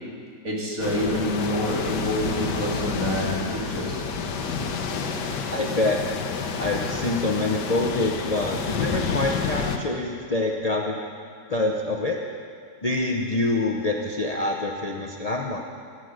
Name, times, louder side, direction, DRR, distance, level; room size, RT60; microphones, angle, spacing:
voice 1, 0.4-4.0 5.2-5.3, equal, 45° right, -4 dB, 2.8 m, -27 dB
sound 1, 0.8-9.8, left 5 dB, 65° left, 1.4 m, -29 dB
voice 2, 5.5-6.0 6.6-11.0 11.5-12.2 12.8-15.6, left 2 dB, 45° left, 1 dB, 0.5 m, -26 dB
12.5 x 12.0 x 6.3 m, 2.2 s
omnidirectional pair, 2.0 m